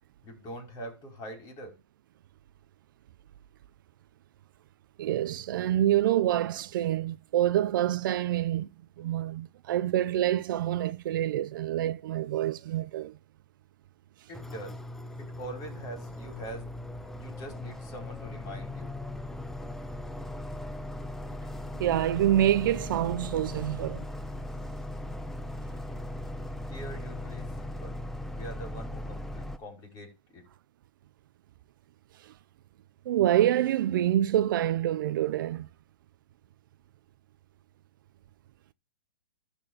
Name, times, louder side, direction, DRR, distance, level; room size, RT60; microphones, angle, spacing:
voice 1, 0.2-1.7 14.3-14.8 15.2-16.7 17.2-18.9 26.7-28.0 28.3-30.4, right 1 dB, 30° left, 5.0 m, -43 dB
voice 2, 5.0-8.7 9.0-13.2 21.8-24.0 32.2-32.3 33.1-35.7, right 12 dB, 55° right, 0.5 m, -26 dB
sound 1, 14.3-29.6, left 1 dB, 5° left, 0.6 m, -38 dB
12.0 x 4.4 x 7.2 m
hypercardioid pair, 140°, 13 cm